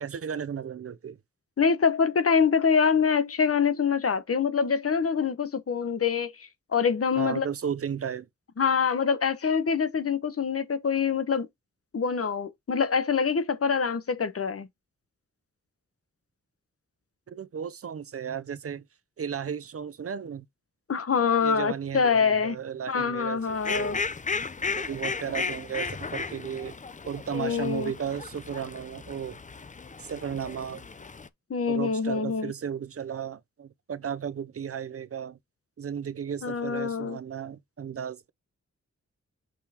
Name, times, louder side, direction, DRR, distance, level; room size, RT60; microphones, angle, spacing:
voice 1, 0.0-1.2 7.2-8.3 17.3-18.8 19.2-20.4 21.4-24.1 24.7-26.8 27.1-29.4 30.0-30.8 31.7-35.4 35.8-38.3, right 8 dB, 50° right, 0.5 m, -34 dB
voice 2, 1.6-7.5 8.6-11.5 11.9-14.7 20.9-22.6 22.9-24.0 27.3-27.9 31.5-32.5 36.4-37.2, left 6 dB, 55° left, 0.9 m, -25 dB
Fowl, 23.5-31.3, left 4 dB, 25° left, 0.5 m, -35 dB
6.3 x 5.4 x 2.8 m
wide cardioid pair, 140°, 29 cm